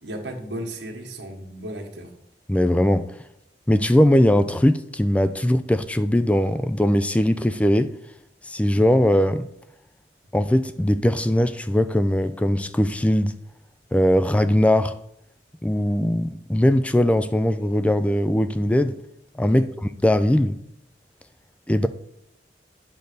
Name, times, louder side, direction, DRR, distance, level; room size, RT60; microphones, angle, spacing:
voice 1, 0.0-2.1 19.5-19.7, right 1 dB, 90° right, 1.6 m, -35 dB
voice 2, 2.5-3.1 3.7-7.9 8.4-9.5 10.3-13.4 13.9-15.0 15.6-19.0 19.4-19.6 20.0-20.5 21.7-21.9, left 1 dB, 10° left, 0.3 m, -20 dB
9.1 x 4.0 x 6.7 m
head